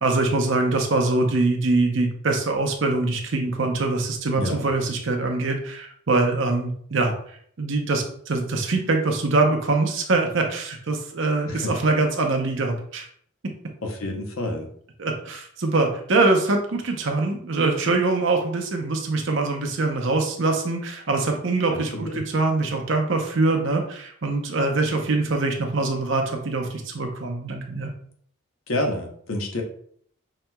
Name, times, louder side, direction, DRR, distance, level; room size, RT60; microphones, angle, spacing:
voice 1, 0.0-7.1 7.6-13.1 15.0-27.9, right 3 dB, 65° right, 3 dB, 0.7 m, -23 dB
voice 2, 4.4-4.7 11.5-11.7 13.8-14.7 21.7-22.2 28.7-29.6, left 1 dB, 85° left, 3 dB, 0.8 m, -28 dB
5.8 x 2.9 x 2.2 m, 0.62 s
head